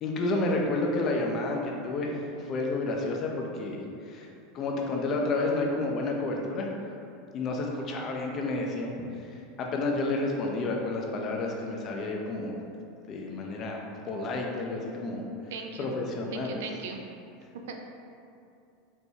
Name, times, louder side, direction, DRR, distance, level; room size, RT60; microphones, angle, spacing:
voice 1, 0.0-2.1 2.5-3.8 4.1-4.3 4.5-6.7 7.3-8.9 9.6-12.6 13.1-15.2 15.8-16.6, left 2 dB, 40° left, 0 dB, 0.5 m, -30 dB
voice 2, 15.5-15.9 16.3-17.0 17.7-17.8, right 5 dB, 75° right, 3 dB, 0.3 m, -38 dB
4.4 x 2.2 x 2.7 m, 2.6 s
hypercardioid pair, 100°, 0 cm